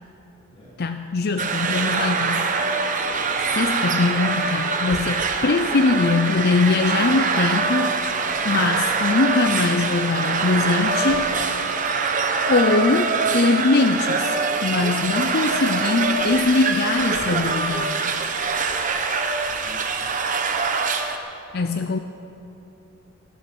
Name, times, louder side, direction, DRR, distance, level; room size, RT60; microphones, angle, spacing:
voice 1, 0.8-2.7 3.5-8.0 8.4-11.3 12.5-18.2 21.5-22.0, left 3 dB, 45° left, 8 dB, 0.5 m, -22 dB
sound 1, 1.4-21.2, right 4 dB, 35° right, 0.8 m, -24 dB
voice 2, 19.4-20.1, left 1 dB, 25° left, -7 dB, 4.3 m, -44 dB
15.5 x 11.5 x 6.1 m, 3.0 s
head